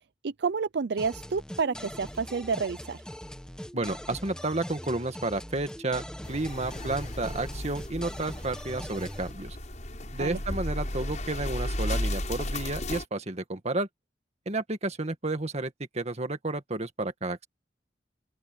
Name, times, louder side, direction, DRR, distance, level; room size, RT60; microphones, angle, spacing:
voice 1, 0.2-3.0 10.2-10.4, right 5 dB, 70° right, 0.5 m, -29 dB
sound 1, 1.0-9.3, equal, 5° left, 1.2 m, -42 dB
voice 2, 3.7-9.6 10.1-13.9 14.5-17.4, right 2 dB, 40° right, 1.9 m, -31 dB
sound 2, 6.2-13.0, left 1 dB, 45° left, 7.4 m, -34 dB
open air
head